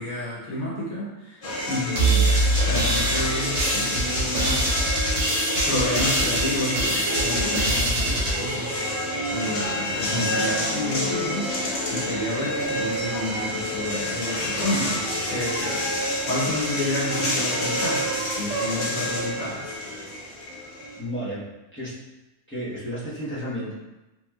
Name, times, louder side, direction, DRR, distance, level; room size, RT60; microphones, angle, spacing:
voice 1, 0.0-5.0 5.3-8.9 9.3-11.5 11.9-15.0 15.3-15.8 16.3-19.7, left 1 dB, 75° left, -6 dB, 1.3 m, -30 dB
sound 1, 1.4-21.0, left 1 dB, 60° left, 0.4 m, -28 dB
sound 2, 1.9-9.4, right 2 dB, 45° right, 0.6 m, -25 dB
sound 3, 7.1-7.5 8.0-12.0 12.4-14.0 14.7-16.3 17.1-18.8, right 5 dB, 75° right, 1.0 m, -37 dB
voice 2, 10.0-10.4 21.0-22.0 22.5-23.7, equal, 10° left, -10 dB, 0.6 m, -32 dB
3.0 x 2.9 x 2.3 m, 1.0 s
omnidirectional pair, 1.5 m